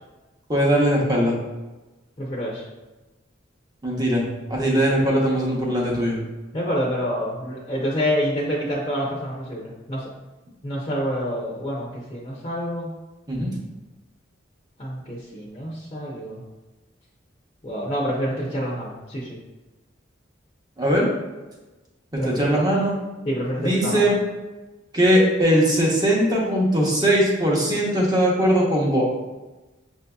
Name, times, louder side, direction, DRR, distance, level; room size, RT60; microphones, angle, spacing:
voice 1, 0.5-1.4 3.8-6.2 13.3-13.5 20.8-21.1 22.2-22.9 23.6-24.2 24.9-29.1, equal, 20° right, -3 dB, 0.9 m, -20 dB
voice 2, 2.2-2.6 6.5-10.0 10.6-12.9 14.8-16.4 17.6-19.4 22.2-22.6 23.2-24.0, equal, 30° left, -4 dB, 0.6 m, -27 dB
5.9 x 2.7 x 2.3 m, 1.1 s
head